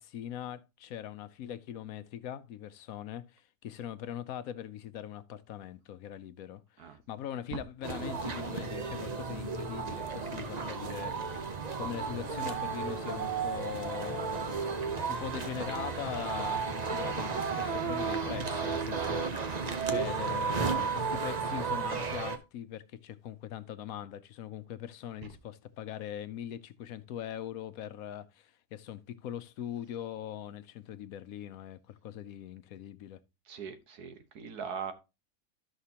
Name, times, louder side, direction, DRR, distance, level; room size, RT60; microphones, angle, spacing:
voice 1, 0.0-33.2, left 10 dB, 70° left, 1.1 m, -41 dB
sound 1, 7.8-22.4, right 5 dB, 35° right, 0.8 m, -33 dB
voice 2, 33.5-34.9, right 6 dB, 85° right, 1.7 m, -41 dB
13.0 x 5.8 x 2.8 m
omnidirectional pair, 1.6 m